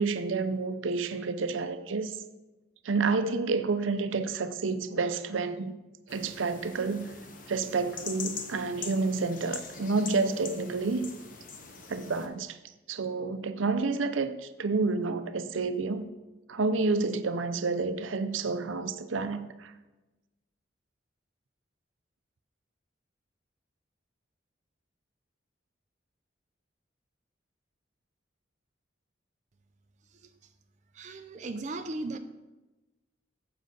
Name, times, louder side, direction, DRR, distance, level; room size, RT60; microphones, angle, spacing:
voice 1, 0.0-2.1 2.8-5.7 6.1-7.0 7.5-11.1 11.9-12.6 12.9-16.1 16.5-19.7, right 4 dB, 85° right, 0.6 m, -29 dB
sound 1, 6.1-12.3, left 5 dB, 45° left, 0.9 m, -43 dB
voice 2, 30.9-32.2, right 2 dB, 35° right, 0.5 m, -36 dB
7.6 x 7.5 x 5.3 m
head